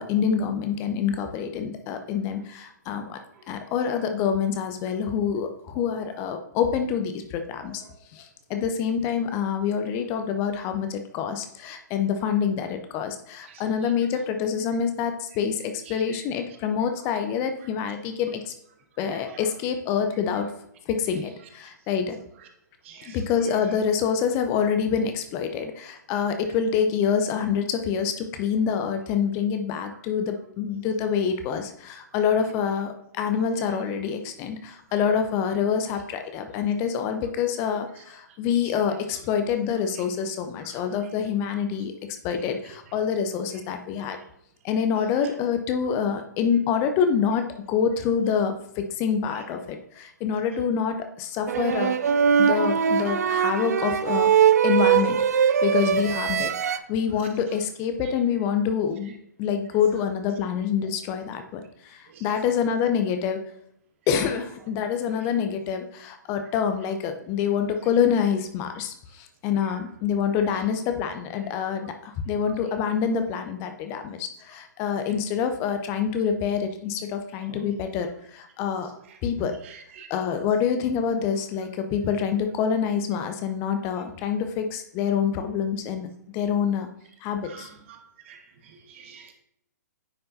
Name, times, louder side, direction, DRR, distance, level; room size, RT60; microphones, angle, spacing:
voice 1, 0.0-3.2 3.5-7.8 8.1-18.5 19.0-20.5 20.9-22.2 23.0-41.9 42.2-44.2 44.6-52.0 52.4-54.3 54.6-63.4 64.1-78.9 79.2-79.6 80.1-86.9 87.2-87.7, left 7 dB, 25° left, 7 dB, 0.6 m, -26 dB
voice 2, 19.1-19.4 22.8-23.2 56.6-56.8 62.1-62.2 69.6-69.7 79.6-80.1 87.4-88.0 88.2-89.3, right 7 dB, 40° right, 5 dB, 1.1 m, -47 dB
sound 1, 51.5-56.8, right 8 dB, 60° right, 0.4 m, -21 dB
9.5 x 5.5 x 2.6 m, 0.73 s
figure-of-eight pair, 120°, 10 cm